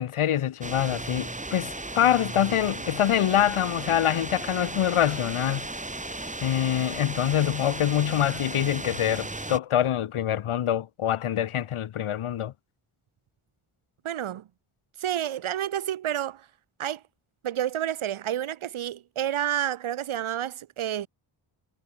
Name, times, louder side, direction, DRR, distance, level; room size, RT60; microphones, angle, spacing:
voice 1, 0.0-5.7 6.4-12.5, left 11 dB, 85° left, 2.3 m, -25 dB
sound 1, 0.6-9.6, right 2 dB, 15° right, 3.4 m, -35 dB
voice 2, 14.0-14.4 15.0-16.4 16.8-17.0 17.4-21.1, right 11 dB, 75° right, 1.4 m, -29 dB
cardioid pair, 85°, 49 cm